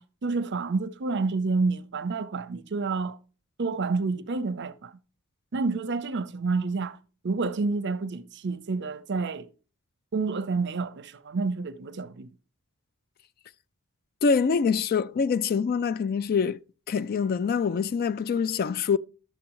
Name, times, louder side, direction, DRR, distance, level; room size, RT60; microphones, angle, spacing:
voice 1, 0.0-3.2 3.6-4.9 5.5-7.0 7.2-9.5 10.1-12.3, right 4 dB, 55° right, 0.6 m, -29 dB
voice 2, 14.2-16.6 16.9-19.0, left 5 dB, 45° left, 0.3 m, -25 dB
12.0 x 7.4 x 3.0 m
head